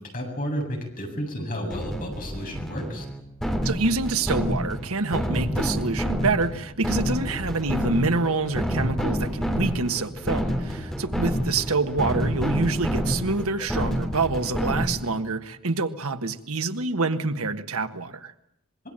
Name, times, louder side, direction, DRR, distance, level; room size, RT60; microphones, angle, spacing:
voice 1, 0.0-3.0, equal, 40° left, 2 dB, 7.9 m, -32 dB
sound 1, 1.7-15.2, equal, 5° left, 3.6 m, -28 dB
voice 2, 3.6-18.3, right 3 dB, 75° right, 9 dB, 1.5 m, -26 dB
26.0 x 22.0 x 8.9 m, 0.73 s
head